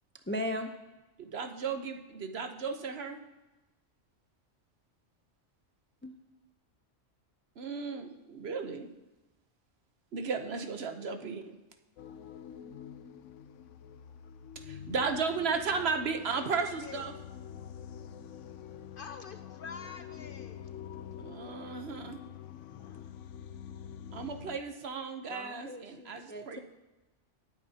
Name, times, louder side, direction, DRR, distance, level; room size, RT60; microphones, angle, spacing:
voice 1, 0.3-0.7 6.0-6.1 25.3-26.6, left 1 dB, 15° left, 5 dB, 0.4 m, -37 dB
voice 2, 1.2-3.2 7.6-8.9 10.1-11.6 14.7-17.1 21.2-22.2 24.1-26.6, right 5 dB, 60° right, 6 dB, 1.1 m, -35 dB
sound 1, 12.0-24.6, left 9 dB, 85° left, 0.9 m, -46 dB
voice 3, 16.4-17.0 18.6-20.7 22.7-23.1, left 5 dB, 60° left, 9 dB, 0.6 m, -48 dB
19.0 x 8.9 x 2.8 m, 1.0 s
omnidirectional pair, 1.2 m